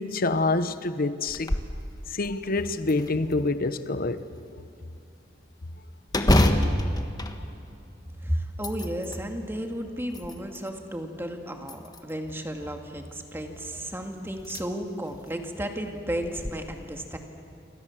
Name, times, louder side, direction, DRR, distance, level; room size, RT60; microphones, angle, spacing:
voice 1, 0.0-1.5 2.1-4.3, left 3 dB, 50° left, 1.0 m, -26 dB
sound 1, 1.3-1.8 2.2-2.3 2.9-3.7 6.1-8.1 8.5-9.2 9.9-10.7 11.6-12.3 13.8-13.9 14.4-14.6 15.1-15.2 16.2-16.5, left 1 dB, 20° left, 1.4 m, -26 dB
voice 2, 8.2-17.2, equal, 15° right, 2.2 m, -33 dB
28.5 x 25.0 x 7.4 m
head